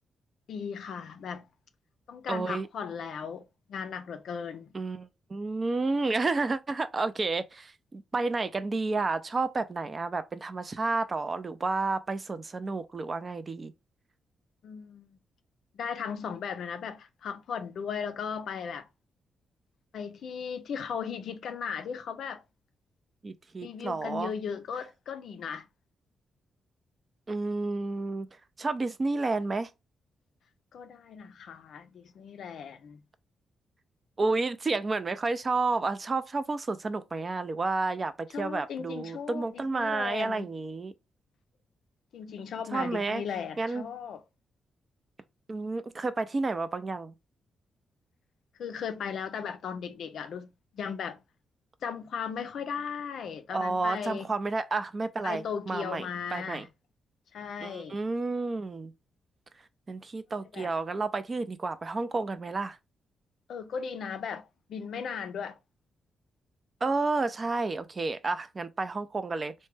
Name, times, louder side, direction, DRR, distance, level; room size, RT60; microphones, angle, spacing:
voice 1, 0.5-1.5 2.1-4.7 14.6-15.2 15.7-18.9 19.9-22.4 23.6-25.7 30.7-33.0 38.3-40.5 42.1-44.2 48.6-51.2 51.8-54.3 55.2-56.7 57.3-58.0 60.5-60.7 63.5-65.6, left 6 dB, 70° left, 0.4 m, -37 dB
voice 2, 2.3-2.7 4.7-13.7 23.2-24.3 27.3-28.3 28.6-29.7 34.2-40.9 42.7-43.2 43.6-43.8 45.5-47.1 53.5-56.1 56.3-56.7 57.6-58.9 59.9-62.8 66.8-69.5, right 3 dB, 40° right, 0.4 m, -31 dB
3.2 x 2.1 x 3.2 m
supercardioid pair, 50°, 0 cm